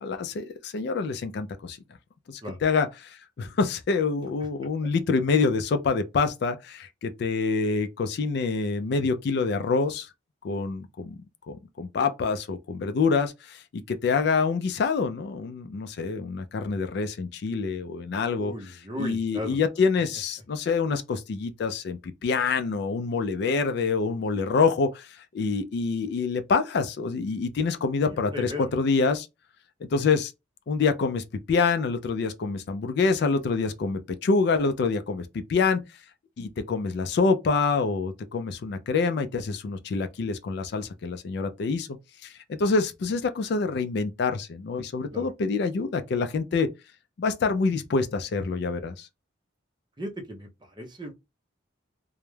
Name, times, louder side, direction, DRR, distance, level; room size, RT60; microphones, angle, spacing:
voice 1, 0.0-1.8 2.3-10.1 10.4-11.2 11.5-18.5 19.0-29.3 29.8-30.3 30.7-35.9 36.4-41.9 42.2-46.7 47.2-49.1, left 4 dB, 55° left, 0.3 m, -26 dB
voice 2, 18.3-19.6 28.0-28.7 45.1-45.3 50.0-51.1, left 1 dB, 25° right, 0.5 m, -37 dB
2.3 x 2.1 x 3.0 m
head